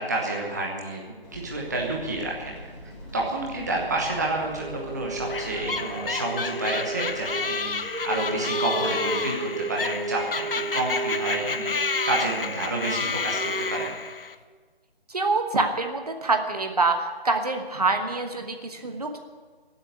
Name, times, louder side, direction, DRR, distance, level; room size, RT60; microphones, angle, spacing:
voice 1, 0.0-2.6 3.1-10.4 10.7-13.9, right 2 dB, 15° right, -2 dB, 1.1 m, -29 dB
sound 1, 1.2-8.5, equal, 30° left, 3.1 m, -44 dB
sound 2, 4.6-13.9, right 2 dB, 70° right, 5.2 m, -34 dB
sound 3, 5.3-14.4, left 4 dB, 65° left, 1.0 m, -30 dB
voice 2, 15.1-17.0 17.2-19.2, right 3 dB, 40° right, 5 dB, 1.2 m, -25 dB
16.0 x 8.1 x 9.6 m, 1.5 s
hypercardioid pair, 175°, 31 cm